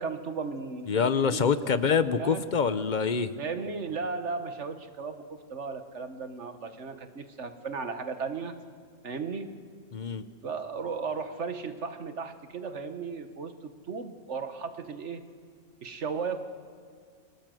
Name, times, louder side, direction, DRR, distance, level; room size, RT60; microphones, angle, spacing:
voice 1, 0.0-1.8 2.1-2.4 3.4-8.6 9.0-9.6 10.4-15.2 15.8-16.4, right 5 dB, 55° right, 8 dB, 1.6 m, -35 dB
voice 2, 0.9-3.4 9.9-10.2, left 6 dB, 40° left, 12 dB, 0.8 m, -26 dB
30.0 x 21.5 x 7.7 m, 2.1 s
omnidirectional pair, 1.5 m